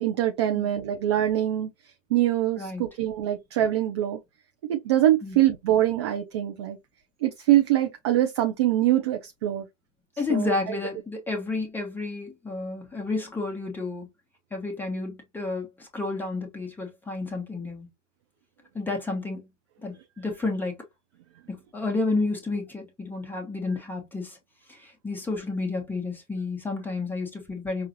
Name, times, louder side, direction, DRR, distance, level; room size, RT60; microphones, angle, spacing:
voice 1, 0.0-1.7 2.1-4.2 4.7-6.8 7.2-9.7 10.3-10.5, right 13 dB, 25° right, 0.4 m, -24 dB
voice 2, 10.2-14.1 14.5-17.9 18.7-19.5 19.8-20.7 21.7-24.4 24.7-27.9, left 3 dB, 5° left, 1.1 m, -31 dB
5.7 x 2.5 x 2.7 m
figure-of-eight pair, 110°, 39 cm